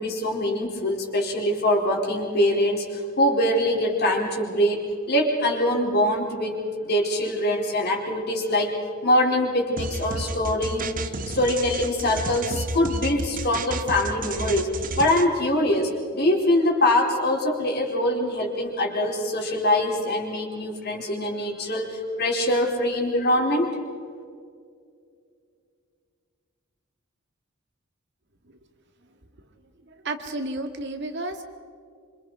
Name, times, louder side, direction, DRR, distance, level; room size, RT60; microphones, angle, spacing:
voice 1, 0.0-8.7 9.0-14.7 15.0-23.7, left 1 dB, 50° left, 0 dB, 4.5 m, -23 dB
sound 1, 9.8-15.3, right 2 dB, 40° right, 1.2 m, -31 dB
voice 2, 29.9-31.4, right 2 dB, 60° right, 5 dB, 2.1 m, -32 dB
27.0 x 27.0 x 5.0 m, 2.3 s
head